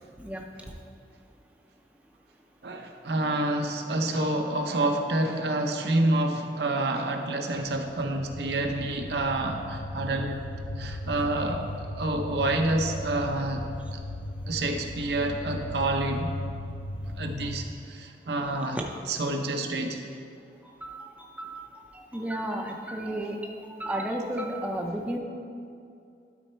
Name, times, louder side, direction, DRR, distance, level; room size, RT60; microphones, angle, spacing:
voice 1, 2.6-14.0 14.5-16.3 17.1-20.0, right 2 dB, 70° right, 4 dB, 0.7 m, -28 dB
sound 1, 7.7-17.6, left 1 dB, 40° left, 0.6 m, -37 dB
voice 2, 20.8-21.6 21.9-25.2, right 1 dB, 10° right, 0 dB, 0.5 m, -33 dB
12.5 x 4.2 x 4.4 m, 2.5 s
head